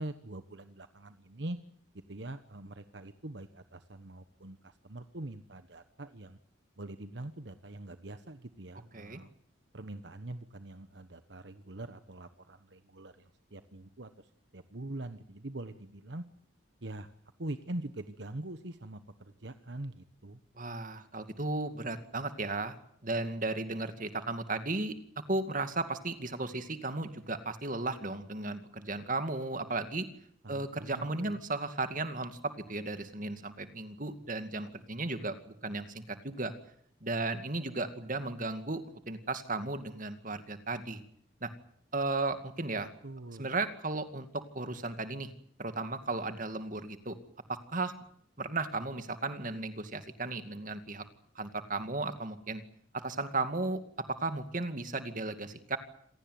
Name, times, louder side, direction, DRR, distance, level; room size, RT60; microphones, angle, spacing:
voice 1, 0.0-1.6 2.1-6.4 6.8-9.3 9.7-16.2 16.8-17.1 17.4-20.4 30.4-31.4 43.0-43.5, right 1 dB, 60° right, 10 dB, 1.2 m, -43 dB
voice 2, 20.6-22.8 23.0-25.0 25.3-30.1 30.5-36.5 37.0-41.0 41.4-41.5 41.9-42.9 43.4-45.3 45.6-47.2 47.5-47.9 48.4-51.0 51.4-52.6 52.9-53.8 54.1-55.8, right 3 dB, 40° right, 9 dB, 2.3 m, -35 dB
27.0 x 17.5 x 9.4 m, 0.67 s
head